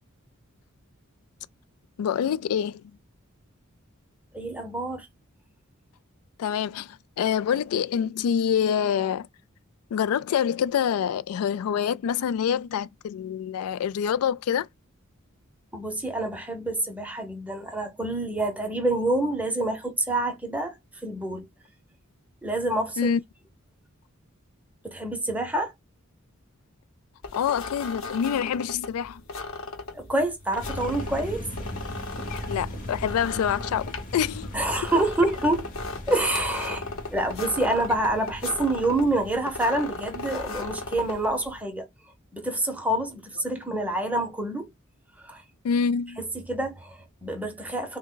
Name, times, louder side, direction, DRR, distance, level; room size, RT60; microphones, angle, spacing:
voice 1, 2.0-2.8 6.4-9.3 9.9-14.7 23.0-23.2 27.4-29.2 32.5-34.5 45.6-46.2, left 8 dB, 85° left, 0.3 m, -26 dB
voice 2, 4.3-5.1 15.7-20.7 21.0-21.5 22.4-23.1 24.8-25.7 29.9-31.5 34.5-35.7 36.1-36.8 37.1-41.9 42.3-44.7 45.2-45.4 46.2-48.0, right 1 dB, 5° right, 0.7 m, -27 dB
sound 1, 27.2-41.6, left 3 dB, 65° left, 0.9 m, -37 dB
sound 2, 30.6-41.2, left 1 dB, 40° left, 0.9 m, -39 dB
3.5 x 2.1 x 3.7 m
head